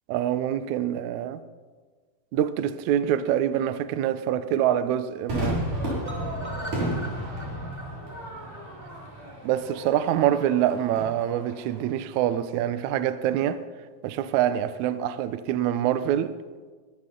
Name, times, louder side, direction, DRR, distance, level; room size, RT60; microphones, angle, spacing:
voice 1, 0.1-1.4 2.3-5.6 9.4-13.6 14.0-16.3, right 11 dB, 90° right, 1.6 m, -25 dB
Crowd / Fireworks, 5.3-11.8, right 1 dB, 55° right, 7.2 m, -33 dB
sound 1, 6.0-10.1 10.4-10.5 10.8-10.9 11.2-11.3, equal, 40° right, 0.6 m, -43 dB
22.5 x 14.0 x 3.8 m
omnidirectional pair, 4.3 m